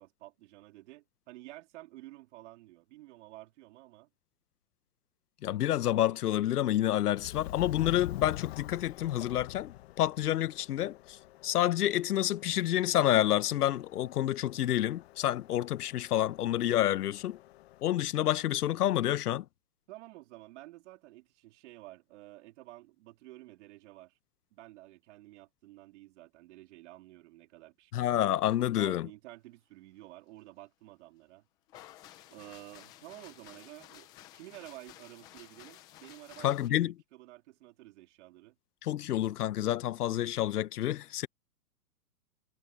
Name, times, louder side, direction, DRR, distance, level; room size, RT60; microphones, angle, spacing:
voice 1, 0.0-4.1 19.9-24.1 24.5-31.5 32.3-38.6, right 18 dB, 45° right, 3.5 m, -51 dB
voice 2, 5.4-11.2 11.4-17.4 17.8-19.4 27.9-29.1 36.4-36.9 38.8-41.3, left 12 dB, 70° left, 1.0 m, -29 dB
Subway metro underground, 7.2-17.8, left 16 dB, 40° left, 0.9 m, -46 dB
sound 1, 31.7-36.7, left 13 dB, 10° left, 0.4 m, -54 dB
hypercardioid pair, 150°, 47 cm